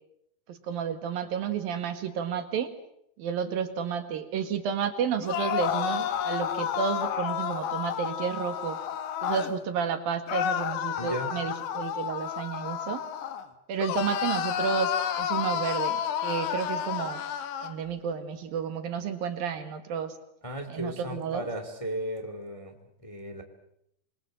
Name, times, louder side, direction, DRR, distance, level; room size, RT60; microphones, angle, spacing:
voice 1, 0.5-2.7 3.2-8.8 9.2-13.0 13.7-17.2 17.6-20.2 20.7-21.5, right 7 dB, 65° right, 9 dB, 3.3 m, -31 dB
sound 1, 5.2-9.5 10.3-13.4 13.8-17.7, left 9 dB, 85° left, 3.7 m, -31 dB
voice 2, 11.0-11.3 20.4-22.7 23.0-23.4, equal, 10° left, 5 dB, 2.3 m, -35 dB
28.0 x 22.0 x 7.7 m, 0.74 s
omnidirectional pair, 4.6 m